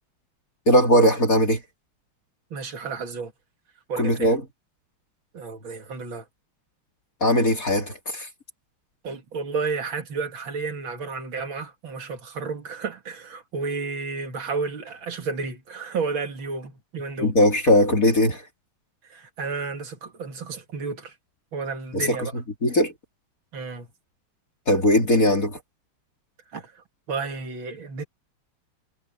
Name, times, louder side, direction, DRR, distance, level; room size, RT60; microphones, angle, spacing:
voice 1, 0.7-1.6 4.0-4.4 7.2-8.3 17.2-18.4 21.9-22.9 24.7-25.6, equal, 40° left, 4.1 m, -20 dB
voice 2, 2.5-3.3 3.9-4.3 5.3-6.2 9.0-17.3 19.1-21.1 21.5-22.3 23.5-23.9 26.5-28.0, right 4 dB, 70° right, 3.0 m, -32 dB
omnidirectional pair, 2.3 m